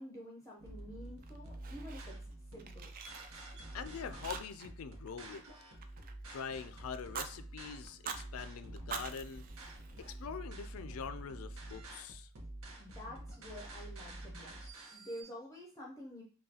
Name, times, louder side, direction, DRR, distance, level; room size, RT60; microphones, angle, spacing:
voice 1, 0.0-2.2 2.5-2.9 12.8-16.2, equal, 15° left, 0.6 m, -49 dB
sound 1, 0.6-15.2, right 1 dB, 85° right, 0.9 m, -48 dB
Fire, 1.2-2.3 2.6-3.8 4.2-4.8 5.1-6.5 6.9-7.3 7.9-8.3 8.8-10.3, right 6 dB, 45° right, 0.4 m, -45 dB
voice 2, 3.7-5.5 6.3-9.5 10.0-12.3, left 6 dB, 85° left, 0.4 m, -44 dB
5.4 x 2.3 x 2.8 m
head